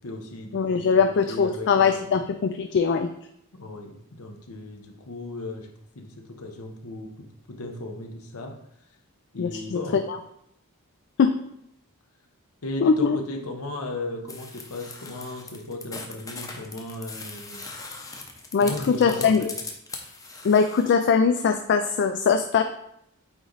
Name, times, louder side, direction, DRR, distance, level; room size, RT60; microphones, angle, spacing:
voice 1, 0.0-2.2 3.5-8.6 9.3-10.0 12.6-17.7 18.6-19.5, left 2 dB, 70° left, 3 dB, 0.9 m, -36 dB
voice 2, 0.5-3.1 9.4-9.8 10.1-10.2 11.2-11.3 12.8-13.2 18.5-19.4 20.4-22.6, left 5 dB, 55° left, 7 dB, 0.3 m, -21 dB
sound 1, 14.3-20.9, left 3 dB, 15° left, 0.7 m, -40 dB
8.8 x 3.1 x 4.0 m, 0.76 s
head